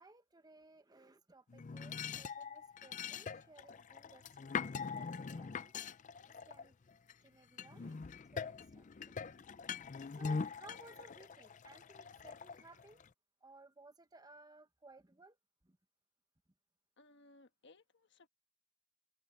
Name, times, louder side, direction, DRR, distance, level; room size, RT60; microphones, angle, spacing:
voice 1, 0.0-5.8 6.4-6.8 7.2-8.0 8.3-9.3 10.1-13.0 13.4-15.4 15.6-15.8, right 2 dB, 20° right, 1.0 m, -60 dB
sound 1, 1.5-7.1 7.6-13.1, left 5 dB, 35° left, 0.4 m, -43 dB
voice 2, 17.0-18.3, left 2 dB, 60° left, 1.4 m, -63 dB
head